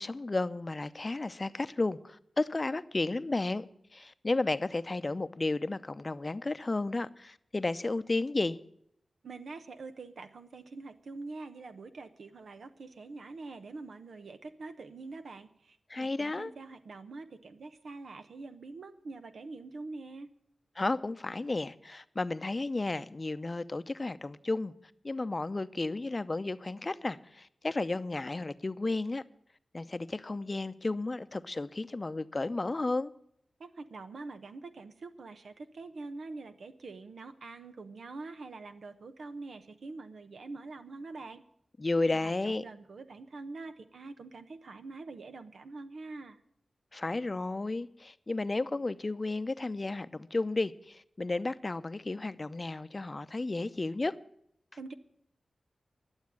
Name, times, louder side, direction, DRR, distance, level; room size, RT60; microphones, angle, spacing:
voice 1, 0.0-3.6 3.9-8.6 15.9-16.5 20.8-24.7 25.0-29.2 29.7-33.1 41.8-42.6 46.9-54.1, left 2 dB, 40° left, 0.6 m, -33 dB
voice 2, 9.2-20.3 33.6-41.4 42.0-46.4 54.8-54.9, right 3 dB, 80° right, 0.9 m, -45 dB
11.5 x 7.2 x 9.8 m
cardioid pair, 40°, 0 cm